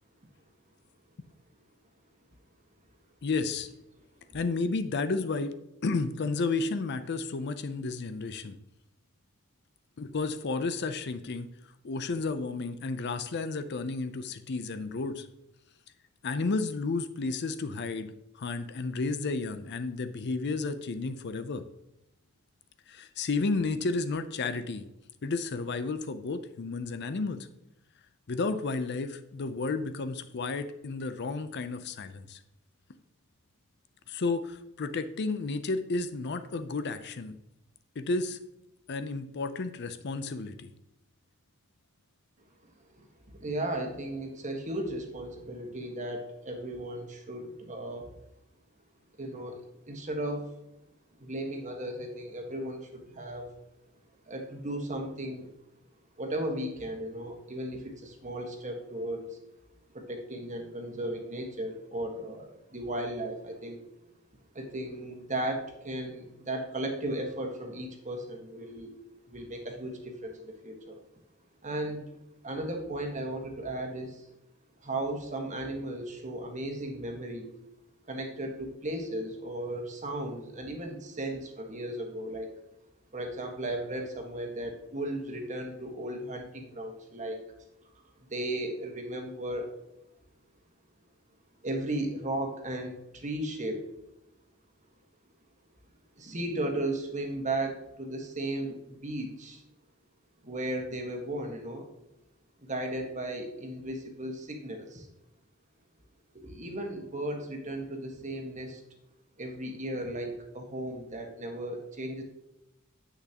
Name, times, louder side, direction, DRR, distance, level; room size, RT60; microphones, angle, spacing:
voice 1, 3.2-3.7 4.3-5.5 5.8-8.6 10.0-11.5 11.8-15.3 16.2-21.6 22.9-24.9 25.2-27.5 28.3-32.4 34.1-37.4 38.0-38.4 38.9-40.7, left 3 dB, 50° left, 11 dB, 0.5 m, -32 dB
voice 2, 42.9-48.1 49.2-50.4 51.2-53.5 54.3-55.5 56.2-59.4 59.9-63.8 64.5-68.9 69.3-71.0 71.6-72.0 72.4-74.3 74.8-77.5 78.1-82.5 83.1-87.4 88.3-89.7 91.6-93.9 96.2-99.6 100.4-101.9 102.6-105.1 106.3-108.8 109.4-112.2, right 1 dB, 35° right, 3 dB, 1.5 m, -35 dB
9.8 x 8.4 x 2.9 m, 0.88 s
head